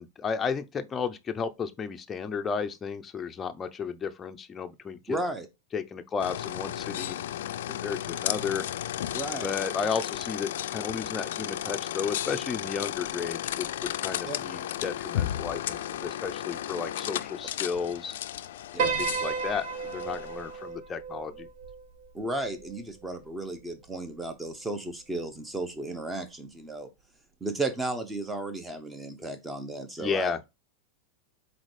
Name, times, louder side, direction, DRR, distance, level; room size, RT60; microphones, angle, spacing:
voice 1, 0.0-5.2 5.7-7.2 7.7-8.6 9.4-18.2 18.8-19.7 19.9-21.5 30.0-30.4, left 6 dB, 20° left, 0.5 m, -33 dB
voice 2, 5.1-5.5 9.1-9.6 14.3-14.5 18.7-19.0 22.1-26.9 27.4-30.3, right 2 dB, 10° right, 0.9 m, -34 dB
sound 1, 6.2-20.6, left 12 dB, 80° left, 0.3 m, -34 dB
Piano, 18.8-23.2, right 5 dB, 65° right, 1.2 m, -33 dB
4.0 x 4.0 x 3.3 m
supercardioid pair, 130°, 0 cm